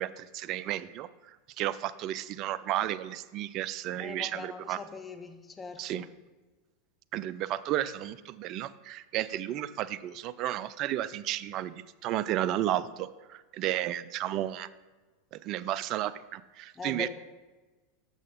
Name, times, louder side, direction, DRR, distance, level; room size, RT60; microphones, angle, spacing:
voice 1, 0.0-4.8 5.8-6.1 7.1-14.7 15.3-17.1, right 13 dB, 50° right, 16 dB, 0.4 m, -33 dB
voice 2, 4.0-6.0 16.8-17.1, left 4 dB, 20° left, 7 dB, 0.8 m, -41 dB
6.4 x 6.3 x 5.2 m, 1.2 s
hypercardioid pair, 90°, 0 cm